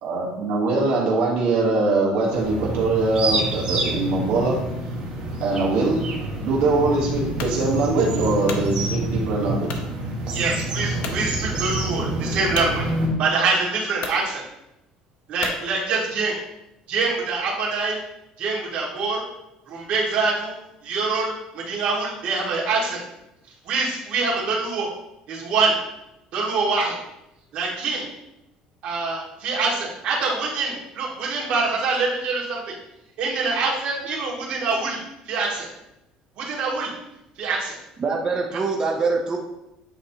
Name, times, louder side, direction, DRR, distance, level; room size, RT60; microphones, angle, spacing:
voice 1, 0.0-4.6 5.4-6.0 6.4-9.8, right 3 dB, 85° right, -3 dB, 1.8 m, -22 dB
sound 1, 2.3-13.1, right 1 dB, 45° right, 1.6 m, -27 dB
sound 2, 7.4-7.6 8.2-8.7 9.7-9.9 10.4-10.5 11.0-11.2 12.5-12.7 13.5-13.6 14.0-14.2 15.4-15.6, left 5 dB, 70° left, 0.9 m, -32 dB
voice 2, 10.3-12.9 13.2-14.4 15.3-16.4 16.9-18.0 18.4-19.2 19.7-20.5 20.8-23.0 23.7-24.9 25.3-25.7 26.3-27.0 27.5-28.0 28.8-32.7 33.2-35.0 35.3-35.7 36.4-36.9 37.4-37.8, right 4 dB, 60° right, -5 dB, 2.3 m, -25 dB
voice 3, 38.0-39.4, right 4 dB, 30° right, 0 dB, 0.7 m, -24 dB
8.8 x 4.0 x 3.0 m, 0.89 s
cardioid pair, 130°, 2 cm